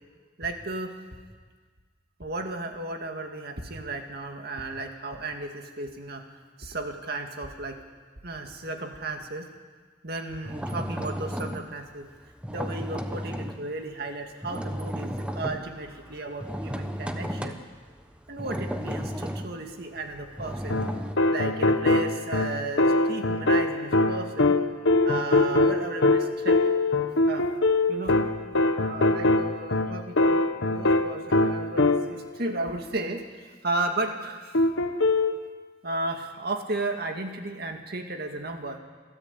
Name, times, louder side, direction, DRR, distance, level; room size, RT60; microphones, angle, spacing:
voice 1, 0.4-1.0 2.2-6.2 6.6-7.8 8.2-9.5 10.0-12.1 12.5-17.6 18.3-20.8 21.3-24.6 25.0-26.6 27.3-27.5 27.9-28.2 28.8-34.6 35.8-38.8, right 2 dB, 55° right, 4 dB, 2.2 m, -34 dB
sound 1, 10.3-13.7 14.0-21.2, equal, 5° right, 1.0 m, -34 dB
sound 2, 20.7-32.3 34.5-35.4, left 2 dB, 80° left, 1.2 m, -23 dB
27.0 x 14.0 x 8.5 m, 1.5 s
head